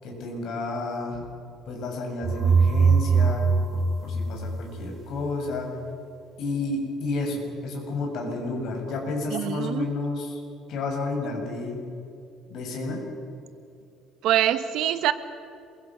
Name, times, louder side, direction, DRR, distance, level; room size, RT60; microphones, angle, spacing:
voice 1, 0.0-1.2 1.7-5.7 6.4-10.4 10.7-11.8 12.5-13.0, left 3 dB, 55° left, 0 dB, 7.1 m, -31 dB
sound 1, 2.2-5.1, right 5 dB, 35° right, 1.2 m, -22 dB
voice 2, 9.3-9.9 14.2-15.1, right 12 dB, 65° right, 11 dB, 1.3 m, -24 dB
27.5 x 23.0 x 6.4 m, 2.6 s
cardioid pair, 165°, 0 cm